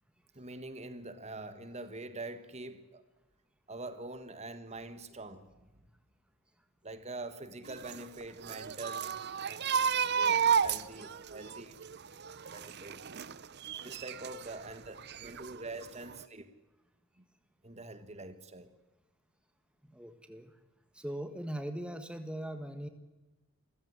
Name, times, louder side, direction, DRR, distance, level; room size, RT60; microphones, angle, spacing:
voice 1, 0.3-3.0 3.7-5.7 6.8-9.2 9.4-9.6 10.0-11.8 12.5-13.0 13.8-16.5 17.2-17.3 17.6-18.7, right 2 dB, 30° right, 1.6 m, -44 dB
sound 1, 7.7-14.6 15.0-16.2, right 7 dB, 50° right, 0.7 m, -32 dB
voice 2, 19.9-20.5 20.9-22.9, right 1 dB, 5° right, 1.6 m, -40 dB
27.5 x 16.0 x 9.9 m
head